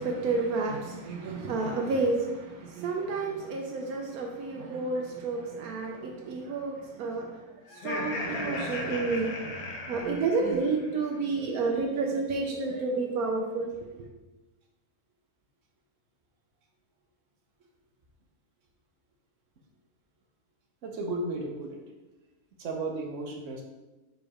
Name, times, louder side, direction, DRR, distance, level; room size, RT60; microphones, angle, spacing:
voice 1, 0.0-7.4 7.8-9.5 9.9-13.9, right 3 dB, 80° right, 1 dB, 1.2 m, -30 dB
Laughter, 7.7-10.9, left 2 dB, 85° left, 1.4 m, -36 dB
voice 2, 20.8-21.8 22.6-23.6, right 2 dB, 60° right, 1 dB, 1.3 m, -34 dB
5.0 x 3.9 x 4.9 m, 1.1 s
omnidirectional pair, 1.5 m